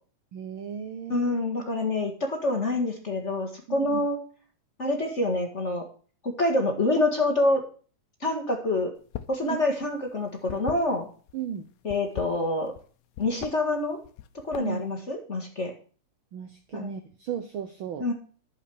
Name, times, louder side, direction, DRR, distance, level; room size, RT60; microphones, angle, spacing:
voice 1, 0.3-1.4 3.7-4.0 11.3-11.6 14.6-14.8 16.3-18.1, right 8 dB, 85° right, 8 dB, 1.1 m, -35 dB
voice 2, 1.1-4.2 4.8-5.9 6.2-7.6 8.2-8.9 9.3-11.1 11.8-12.7 13.2-14.0 14.4-15.7 16.7-16.9 18.0-18.1, left 2 dB, 30° left, 3 dB, 1.6 m, -26 dB
sound 1, 9.0-9.4 9.7-11.3 11.8-12.9 13.1-13.5 14.0-14.9, left 12 dB, 70° left, 2.0 m, -39 dB
11.0 x 7.2 x 6.3 m, 0.41 s
omnidirectional pair, 3.4 m